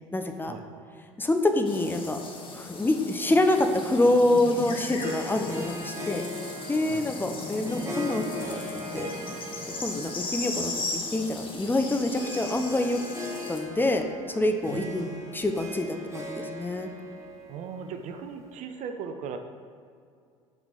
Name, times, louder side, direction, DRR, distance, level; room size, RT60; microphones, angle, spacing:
voice 1, 0.1-0.5 1.2-2.2 2.5-6.2 6.7-9.1 9.8-13.0 13.5-15.1 15.3-16.9, left 2 dB, 10° left, 5 dB, 0.7 m, -26 dB
sound 1, 1.7-13.6, left 2 dB, 30° left, 1.4 m, -37 dB
Harp, 5.0-18.6, equal, 15° right, 1.8 m, -40 dB
voice 2, 14.7-15.5 17.5-19.4, right 6 dB, 50° right, 6 dB, 0.6 m, -38 dB
6.4 x 5.0 x 5.8 m, 2.3 s
figure-of-eight pair, 65°, 16 cm